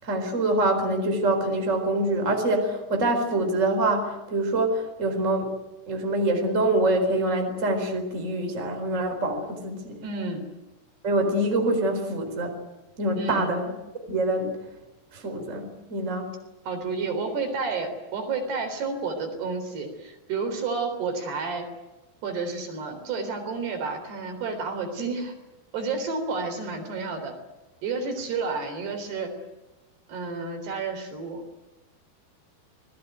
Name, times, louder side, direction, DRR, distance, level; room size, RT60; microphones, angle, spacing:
voice 1, 0.0-5.5 5.9-10.0 11.0-12.5 13.0-13.7 14.1-14.6 15.1-16.3, right 2 dB, 15° right, 4 dB, 4.3 m, -25 dB
voice 2, 10.0-10.5 13.2-13.5 16.7-21.7 22.2-25.3 25.7-27.4 27.8-29.3 30.1-31.4, right 4 dB, 65° right, 6 dB, 5.8 m, -30 dB
26.5 x 20.0 x 9.3 m, 1.0 s
omnidirectional pair, 5.1 m